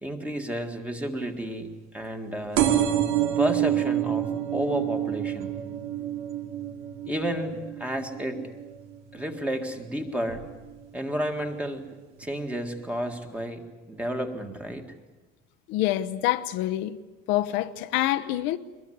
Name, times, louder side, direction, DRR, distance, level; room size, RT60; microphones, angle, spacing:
voice 1, 0.0-2.9 3.4-5.5 5.9-6.1 7.1-8.4 9.1-10.4 10.9-11.8 12.2-14.8, equal, 5° right, 1.9 m, -31 dB
sound 1, 2.6-9.8 10.3-10.7 11.6-11.7 11.9-12.0 12.2-12.3, right 11 dB, 75° right, 3.1 m, -28 dB
voice 2, 15.7-17.0 17.3-18.6, left 14 dB, 65° left, 1.0 m, -26 dB
23.0 x 21.5 x 9.9 m
cardioid pair, 175°, 21 cm